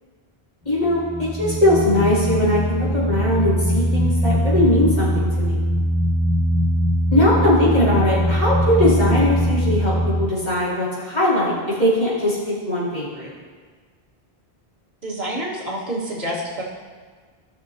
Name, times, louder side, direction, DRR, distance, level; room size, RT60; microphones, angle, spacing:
voice 1, 0.6-5.7 7.1-13.3, left 1 dB, 35° left, -9 dB, 3.3 m, -20 dB
sound 1, 0.7-10.3, equal, 10° left, 2.9 m, -21 dB
voice 2, 15.0-16.6, right 1 dB, 75° right, -5 dB, 2.1 m, -28 dB
16.5 x 6.2 x 2.9 m, 1.5 s
omnidirectional pair, 1.0 m